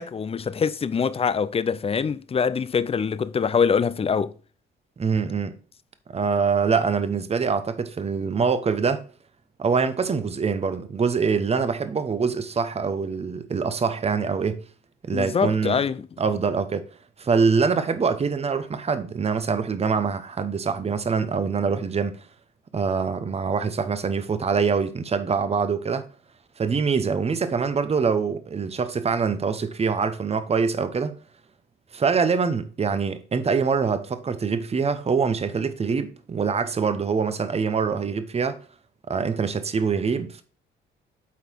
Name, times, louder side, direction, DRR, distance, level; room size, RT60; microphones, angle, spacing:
voice 1, 0.0-4.3 15.1-16.1, left 6 dB, 30° left, 0.5 m, -24 dB
voice 2, 5.0-5.5 6.1-9.0 9.6-14.6 15.0-15.8 16.2-16.9 17.2-22.2 22.7-26.0 26.6-31.1 31.9-38.6 39.1-40.4, right 5 dB, 30° right, 0.9 m, -24 dB
8.4 x 4.0 x 4.5 m
cardioid pair, 90°, 20 cm